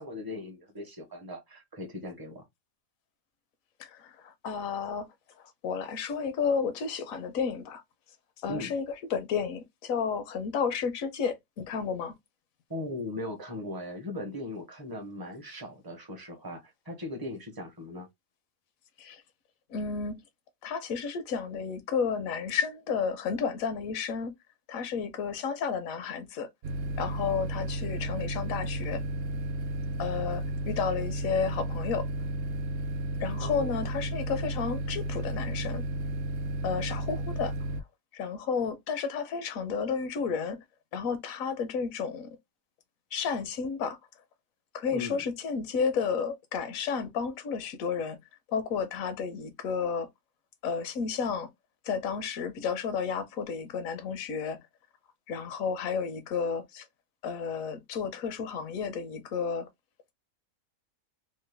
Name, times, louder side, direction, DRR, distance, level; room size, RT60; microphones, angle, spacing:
voice 1, 0.0-2.5 8.5-8.7 12.7-18.1 33.4-33.9 44.9-45.2, left 1 dB, 20° right, 0.7 m, -39 dB
voice 2, 3.8-5.1 5.4-7.8 8.4-8.8 9.1-12.1 19.0-19.2 19.7-20.2 20.6-24.3 24.7-26.5 27.0-29.0 30.0-32.1 33.2-35.8 36.6-37.5 38.1-40.6 40.9-42.4 43.1-44.0 44.7-48.2 48.5-50.1 50.6-51.5 51.8-54.6 55.3-56.8 57.2-59.7, left 6 dB, 75° left, 1.1 m, -32 dB
sound 1, 26.6-37.8, right 1 dB, 70° right, 0.9 m, -33 dB
3.1 x 2.2 x 3.3 m
omnidirectional pair, 1.5 m